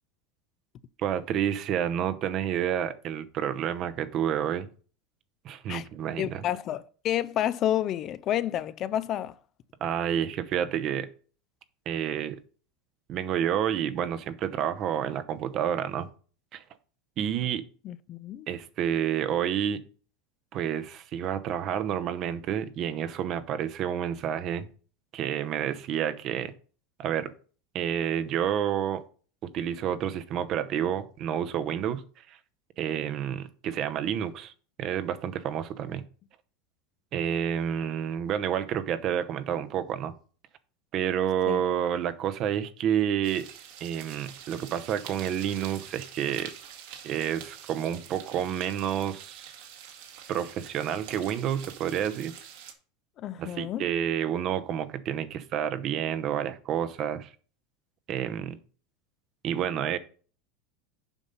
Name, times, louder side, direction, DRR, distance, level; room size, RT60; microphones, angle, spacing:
voice 1, 1.0-4.7 5.4-6.4 9.8-11.1 11.9-12.4 13.1-16.1 16.5-16.6 17.2-17.6 18.5-19.8 20.5-24.7 25.1-26.5 27.0-27.3 27.7-29.0 29.4-32.0 32.3-32.4 32.8-34.5 34.8-36.0 37.1-40.1 40.9-43.5 43.8-46.5 47.0-49.5 50.3-52.3 53.4-57.3 58.1-58.6 59.4-60.0, right 9 dB, 40° right, 0.8 m, -29 dB
voice 2, 6.2-9.4 17.8-18.5 41.5-41.6 53.2-53.8, left 11 dB, 35° left, 0.4 m, -30 dB
sound 1, 43.2-52.7, right 9 dB, 65° right, 1.9 m, -46 dB
7.2 x 5.3 x 5.4 m
supercardioid pair, 150°, 0 cm